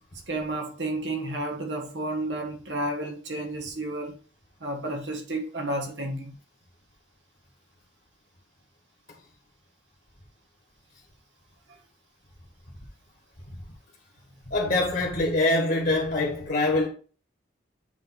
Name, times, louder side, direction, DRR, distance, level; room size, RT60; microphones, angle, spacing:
voice 1, 0.3-4.1 4.6-6.3, right 1 dB, 65° right, 1.5 m, -31 dB
voice 2, 14.5-16.9, left 2 dB, 50° left, 1.7 m, -24 dB
9.0 x 3.5 x 4.1 m
head